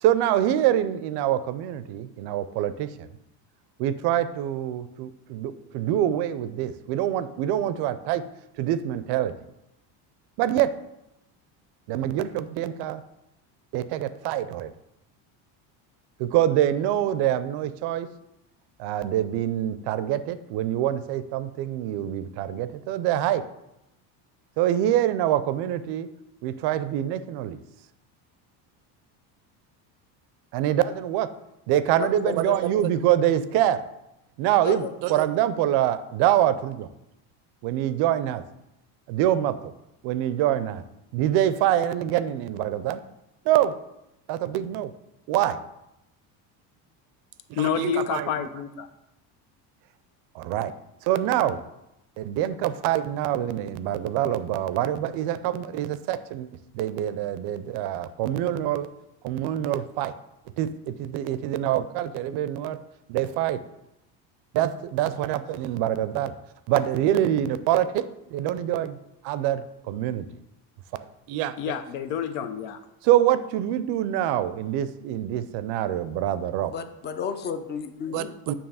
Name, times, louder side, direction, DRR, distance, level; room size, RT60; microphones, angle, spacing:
voice 1, 0.0-3.1 3.8-8.2 8.6-9.3 10.4-10.7 11.9-13.0 13.7-14.7 16.2-18.1 18.8-23.4 24.6-26.1 26.4-27.6 30.5-31.3 31.7-33.8 34.4-36.9 37.6-38.4 39.1-39.7 40.0-40.8 41.1-43.0 43.5-43.7 44.3-44.9 45.3-45.6 47.5-48.5 50.3-50.7 51.0-51.6 52.2-56.5 56.7-58.9 59.2-60.1 60.6-62.8 63.1-63.6 64.5-66.3 66.7-68.0 68.3-69.0 69.2-70.2 70.9-71.6 73.0-76.7 78.1-78.5, right 12 dB, 60° right, 13 dB, 0.5 m, -25 dB
voice 2, 47.5-48.9 71.6-72.8, left 8 dB, 80° left, 9 dB, 0.7 m, -28 dB
voice 3, 76.7-78.3, left 6 dB, 25° left, 9 dB, 0.4 m, -32 dB
7.1 x 2.9 x 5.5 m, 0.87 s
cardioid pair, 130°, 45 cm